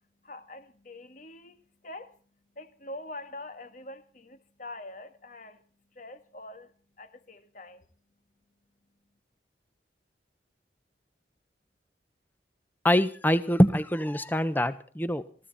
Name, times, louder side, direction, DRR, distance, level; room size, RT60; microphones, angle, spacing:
voice 1, 0.2-1.6 1.8-2.2 2.6-5.6 6.0-6.7 7.0-7.9, left 2 dB, 45° left, 1.8 m, -44 dB
voice 2, 12.8-15.2, equal, 10° left, 1.1 m, -24 dB
22.0 x 15.0 x 4.2 m
head